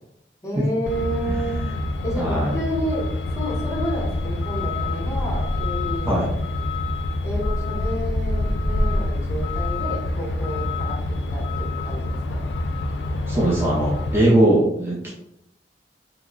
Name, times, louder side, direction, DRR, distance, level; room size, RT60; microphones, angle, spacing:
voice 1, 0.4-1.6 2.0-6.1 7.2-11.0 11.3-12.2, equal, 20° left, -4 dB, 0.8 m, -30 dB
Truck, 0.9-14.2, left 2 dB, 80° left, 0.4 m, -26 dB
voice 2, 2.2-2.6 6.1-6.3 13.3-15.1, right 1 dB, 15° right, -6 dB, 0.5 m, -20 dB
2.9 x 2.2 x 3.7 m, 0.82 s
head